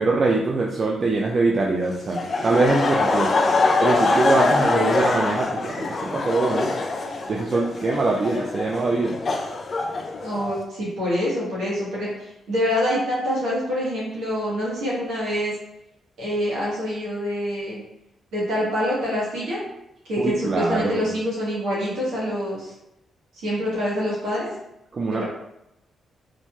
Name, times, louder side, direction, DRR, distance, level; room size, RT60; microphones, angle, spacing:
voice 1, 0.0-3.3 3.8-6.8 7.3-9.2 20.2-21.1 24.9-25.2, right 3 dB, 50° right, -2 dB, 0.3 m, -23 dB
Laughter, 2.1-10.6, left 3 dB, 50° left, 0.4 m, -24 dB
voice 2, 10.2-15.5 16.2-17.8 18.3-19.6 20.1-22.7 23.4-24.5 25.1-25.2, equal, 80° right, -7 dB, 1.2 m, -26 dB
3.1 x 2.5 x 2.2 m, 0.84 s
supercardioid pair, 50°, 0 cm